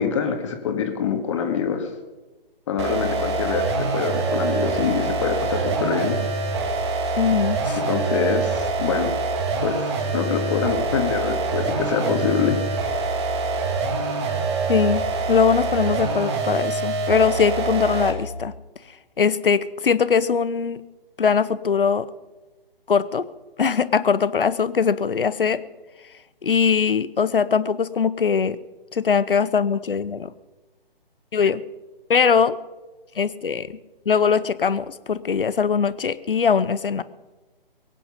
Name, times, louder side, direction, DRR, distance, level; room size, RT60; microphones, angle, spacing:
voice 1, 0.0-1.9 2.7-6.2 7.9-9.1 9.6-12.6, left 7 dB, 30° left, 6 dB, 1.8 m, -25 dB
sound 1, 2.8-18.3, right 4 dB, 30° right, 1.9 m, -25 dB
voice 2, 7.2-7.8 14.7-18.5 19.2-20.8 21.2-22.1 22.9-23.3 23.6-25.6 26.4-28.6 28.9-30.3 31.3-31.6 32.1-32.6 33.2-33.8 34.1-37.0, left 6 dB, 65° left, 17 dB, 0.9 m, -21 dB
22.5 x 9.3 x 5.3 m, 1.2 s
figure-of-eight pair, 145°, 29 cm